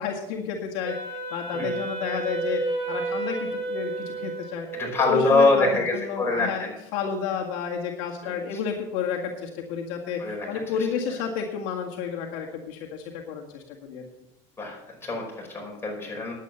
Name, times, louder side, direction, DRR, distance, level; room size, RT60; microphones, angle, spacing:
voice 1, 0.0-2.6 2.9-4.7 5.0-14.1, left 7 dB, 70° left, 0 dB, 1.9 m, -31 dB
Wind instrument woodwind instrument, 0.8-5.2, right 3 dB, 35° right, 4.6 m, -31 dB
voice 2, 4.7-6.7 8.2-8.4 10.2-10.5 14.6-16.3, left 3 dB, 15° left, -1 dB, 5.1 m, -24 dB
10.5 x 8.4 x 6.9 m, 0.88 s
supercardioid pair, 110°, 15 cm